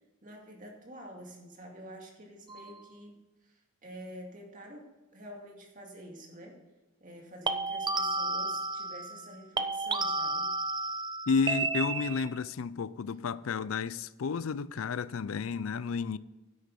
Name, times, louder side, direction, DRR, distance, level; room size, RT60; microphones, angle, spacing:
voice 1, 0.2-3.2 3.8-4.8 5.1-6.6 7.0-10.5, equal, 40° right, 2.2 m, -48 dB
sound 1, 2.5-2.8 7.5-9.3 9.6-12.4, right 3 dB, 20° right, 0.5 m, -32 dB
voice 2, 11.3-16.2, left 5 dB, 85° left, 0.4 m, -31 dB
10.0 x 8.3 x 5.4 m
head